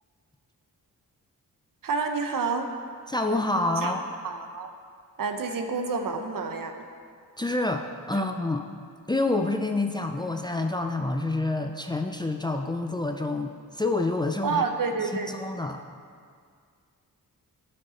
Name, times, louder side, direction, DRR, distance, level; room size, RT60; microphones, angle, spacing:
voice 1, 1.8-2.7 3.8-3.9 4.2-4.7 5.2-6.7 14.4-15.3, right 4 dB, 65° right, 5 dB, 0.9 m, -29 dB
voice 2, 3.1-4.0 7.4-8.6 9.1-14.6 15.0-15.8, left 2 dB, 10° left, 4 dB, 0.5 m, -28 dB
10.5 x 5.3 x 4.4 m, 2.1 s
cardioid pair, 65°, 36 cm